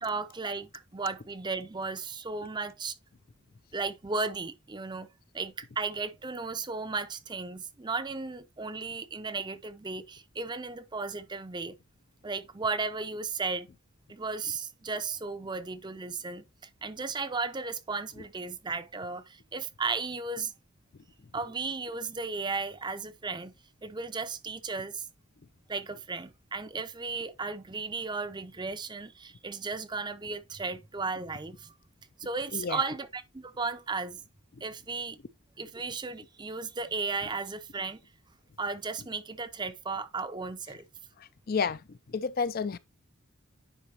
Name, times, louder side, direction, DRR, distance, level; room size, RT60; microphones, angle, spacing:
voice 1, 0.0-2.9 3.7-5.1 5.3-11.8 12.2-13.7 14.1-16.4 16.8-20.5 21.3-23.5 23.8-25.1 25.7-31.7 32.2-34.2 34.6-35.2 35.6-38.0 38.6-40.8, right 4 dB, 20° right, 0.6 m, -35 dB
voice 2, 32.5-32.8 41.2-42.8, left 5 dB, 45° left, 0.4 m, -31 dB
9.8 x 5.0 x 2.9 m
head